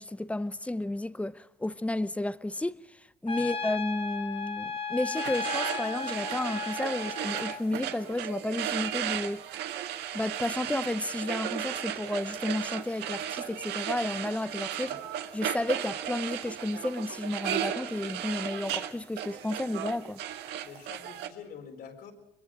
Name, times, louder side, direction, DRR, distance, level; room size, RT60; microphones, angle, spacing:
voice 1, 0.0-2.8 3.2-9.4 10.1-14.9 15.3-20.2, left 1 dB, 10° left, 0.7 m, -32 dB
Trumpet, 3.3-7.6, left 5 dB, 35° left, 1.5 m, -35 dB
sound 1, 5.1-21.3, right 10 dB, 85° right, 1.7 m, -35 dB
voice 2, 20.6-22.1, left 7 dB, 65° left, 4.3 m, -46 dB
23.5 x 22.5 x 6.3 m
cardioid pair, 110°, 17 cm